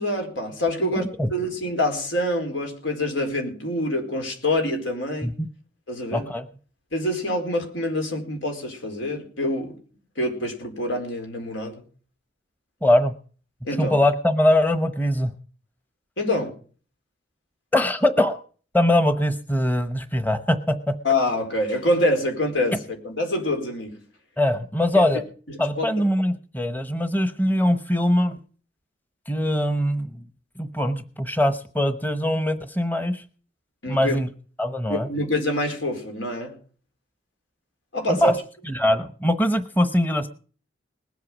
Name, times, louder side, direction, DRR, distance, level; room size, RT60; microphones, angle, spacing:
voice 1, 0.0-1.0 1.3-5.3 5.9-6.2 6.9-9.8 10.2-11.8 13.6-14.0 16.2-16.5 21.0-24.0 24.9-25.0 25.8-25.9 33.8-34.2 34.9-36.5 37.9-38.3, left 1 dB, 90° left, 4.5 m, -26 dB
voice 2, 1.0-1.3 5.2-5.5 6.1-6.5 12.8-13.1 13.8-15.3 17.7-18.4 18.7-20.9 24.4-25.2 25.6-28.4 29.3-30.2 30.6-33.2 33.9-34.3 34.6-35.1 38.1-38.3 38.7-40.3, left 1 dB, 10° left, 0.9 m, -22 dB
20.0 x 8.3 x 6.2 m
head